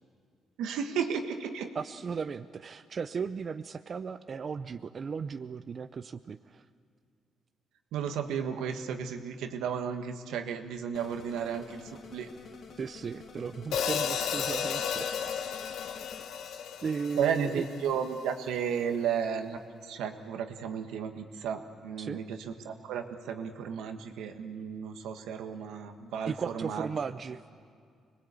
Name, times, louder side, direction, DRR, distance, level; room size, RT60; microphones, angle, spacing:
voice 1, 0.6-1.7 7.9-12.3 17.2-26.9, right 7 dB, 85° right, 6 dB, 1.5 m, -33 dB
voice 2, 1.7-6.6 12.8-15.4 16.8-17.7 22.0-22.2 26.3-27.4, right 5 dB, 45° right, 11 dB, 0.6 m, -36 dB
sound 1, 10.9-16.2, left 5 dB, 65° left, 2.1 m, -50 dB
Hi-hat, 13.7-18.0, left 7 dB, 80° left, 1.1 m, -33 dB
25.5 x 20.5 x 8.3 m, 2.2 s
cardioid pair, 90°, 0 cm